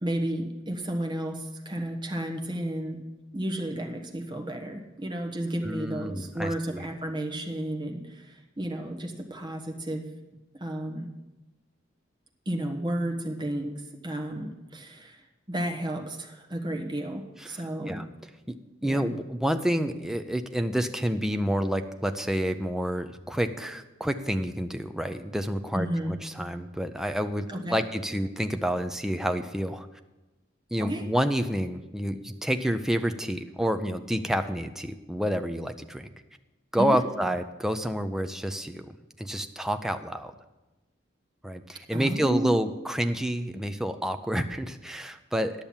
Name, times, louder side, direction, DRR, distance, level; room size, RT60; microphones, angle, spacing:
voice 1, 0.0-3.0 3.3-10.0 10.5-11.1 12.4-18.0 18.8-19.1 25.7-26.2 27.5-27.8 30.8-31.0 36.8-37.0 41.9-42.5, right 1 dB, 25° right, 3 dB, 1.3 m, -32 dB
voice 2, 5.6-6.8 17.5-17.6 17.9-18.1 18.5-18.6 18.8-29.9 30.7-36.1 36.7-40.3 41.4-45.5, equal, ahead, 7 dB, 0.5 m, -29 dB
10.5 x 6.9 x 7.2 m, 1.1 s
head